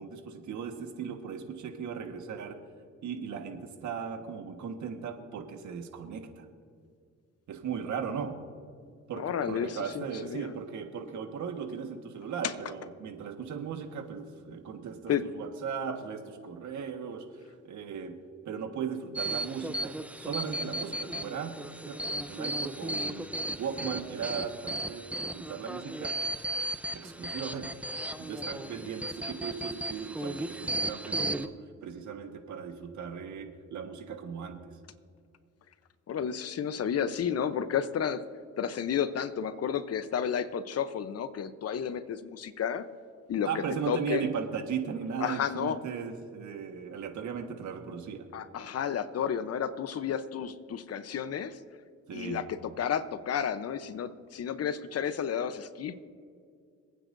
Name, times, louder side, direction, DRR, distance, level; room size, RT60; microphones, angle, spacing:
voice 1, 0.0-2.6 3.0-6.5 7.5-8.4 9.1-18.1 18.4-23.3 23.6-26.1 26.9-27.7 28.2-31.5 31.8-34.6 43.4-48.3 52.1-52.5, right 6 dB, 70° right, 5 dB, 1.5 m, -37 dB
voice 2, 9.1-10.5 12.4-12.5 15.1-15.2 36.1-38.2 38.6-42.8 43.3-44.3 45.2-45.8 48.3-51.6 52.1-55.9, left 8 dB, 55° left, 12 dB, 0.8 m, -32 dB
sound 1, 19.2-31.5, right 1 dB, 5° right, 0.6 m, -35 dB
26.5 x 9.2 x 2.6 m, 2.2 s
cardioid pair, 90°, 30 cm